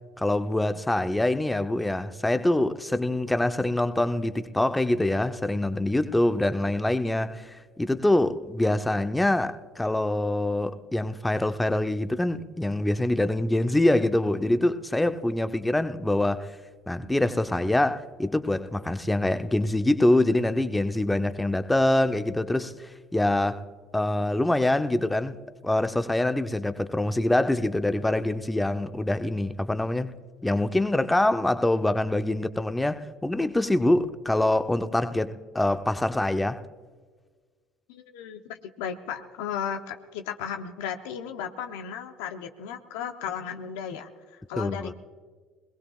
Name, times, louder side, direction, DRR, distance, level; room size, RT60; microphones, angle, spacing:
voice 1, 0.2-16.5 16.9-22.7 23.1-23.6 23.9-30.1 30.4-36.6 44.6-44.9, left 1 dB, 10° left, 0.7 m, -25 dB
voice 2, 37.9-44.9, left 8 dB, 85° left, 0.8 m, -35 dB
21.5 x 21.0 x 2.4 m
supercardioid pair, 80°, 0 cm